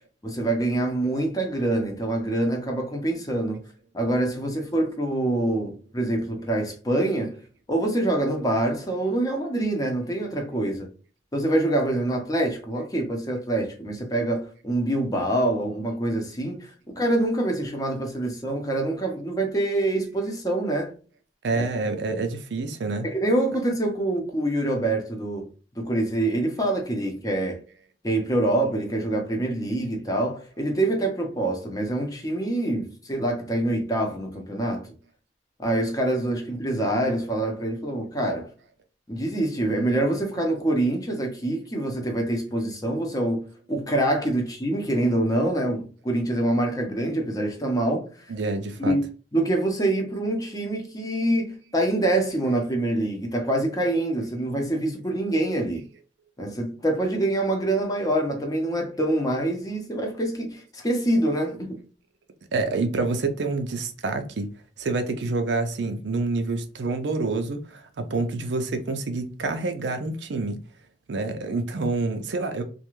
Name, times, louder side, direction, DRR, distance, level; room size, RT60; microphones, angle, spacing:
voice 1, 0.2-3.6 3.9-7.4 7.7-10.9 11.3-20.9 21.6-21.7 23.0-27.6 28.0-34.9 35.6-38.5 39.1-43.4 43.7-48.1 48.8-49.0 49.3-55.9 56.4-61.8, right 1 dB, 20° left, 0.7 m, -25 dB
voice 2, 21.4-23.1 48.3-49.0 62.5-64.5 64.8-70.6 71.1-72.6, right 3 dB, 80° right, 0.5 m, -27 dB
2.4 x 2.2 x 3.0 m
head